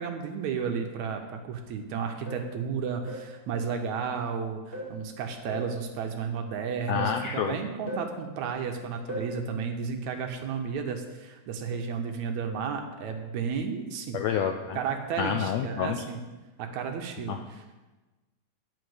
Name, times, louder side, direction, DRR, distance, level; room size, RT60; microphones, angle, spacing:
voice 1, 0.0-14.2 14.7-16.2 16.6-17.6, right 6 dB, 70° right, 4 dB, 2.2 m, -33 dB
sound 1, 2.3-2.6 3.1-3.4 4.7-5.0 5.5-5.8 6.9-7.3 7.9-8.2 9.1-9.4 11.7-11.9 12.4-12.7, equal, 20° left, 2.4 m, -38 dB
voice 2, 6.9-7.5 14.1-14.8 15.2-16.0 17.3-17.4, left 8 dB, 80° left, 5 dB, 1.5 m, -28 dB
10.5 x 5.7 x 7.9 m, 1.2 s
omnidirectional pair, 3.6 m